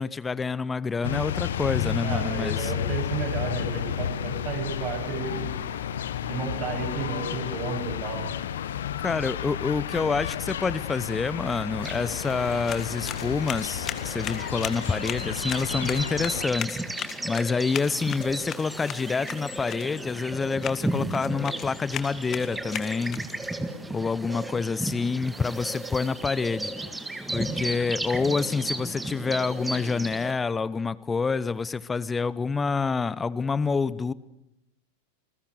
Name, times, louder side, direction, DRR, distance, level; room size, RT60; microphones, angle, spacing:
voice 1, 0.0-2.7 9.0-16.8 17.2-23.2 23.9-26.7 27.3-34.1, left 4 dB, 15° left, 20 dB, 0.8 m, -27 dB
sound 1, 1.0-16.5, left 9 dB, 60° left, 1.3 m, -32 dB
voice 2, 2.0-5.5 6.3-8.3 24.3-24.4, right 5 dB, 35° right, 1 dB, 7.9 m, -33 dB
sound 2, 11.8-30.3, right 2 dB, 5° right, 1.7 m, -35 dB
sound 3, 12.4-23.5, left 10 dB, 30° left, 2.0 m, -39 dB
28.5 x 20.5 x 6.8 m, 0.87 s
figure-of-eight pair, 90°, 0 cm